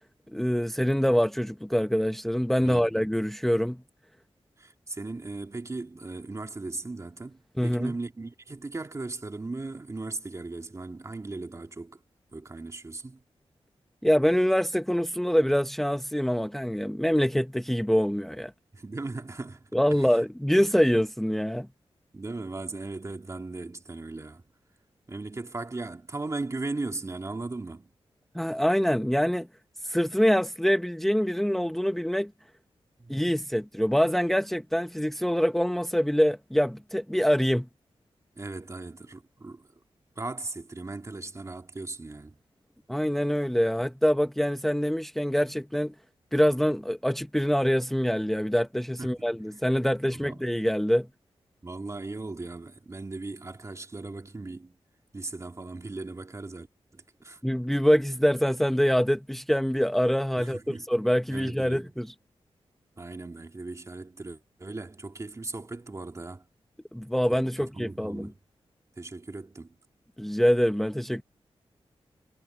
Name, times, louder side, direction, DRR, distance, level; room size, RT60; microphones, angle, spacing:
voice 1, 0.3-3.8 7.6-7.9 14.0-18.5 19.7-21.7 28.3-29.5 29.8-32.3 33.1-37.7 42.9-45.9 46.3-51.1 57.4-62.1 66.9-68.3 70.2-71.2, equal, 5° left, 1.1 m, -25 dB
voice 2, 4.6-12.0 12.3-13.2 18.7-20.2 22.1-24.5 25.1-27.9 33.0-33.3 38.4-39.7 40.2-42.4 49.0-49.3 50.1-50.4 51.6-54.8 55.1-56.7 56.9-57.4 60.4-60.9 61.3-61.9 63.0-66.5 67.3-68.4 69.0-69.8, right 3 dB, 30° right, 2.3 m, -38 dB
wide cardioid pair, 95°, 10 cm